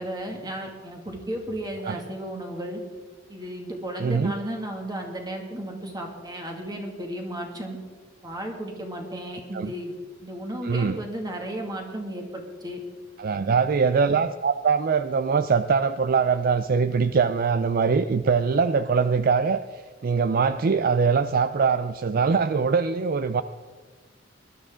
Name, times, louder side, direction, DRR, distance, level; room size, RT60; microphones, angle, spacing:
voice 1, 0.0-2.8 3.3-7.8 8.2-10.0 10.2-12.8 13.4-13.6, right 1 dB, 20° right, 2 dB, 2.2 m, -34 dB
voice 2, 4.0-4.3 9.5-9.7 10.6-11.0 13.2-23.4, right 5 dB, 50° right, 12 dB, 0.4 m, -22 dB
20.0 x 12.5 x 3.8 m, 1.4 s
head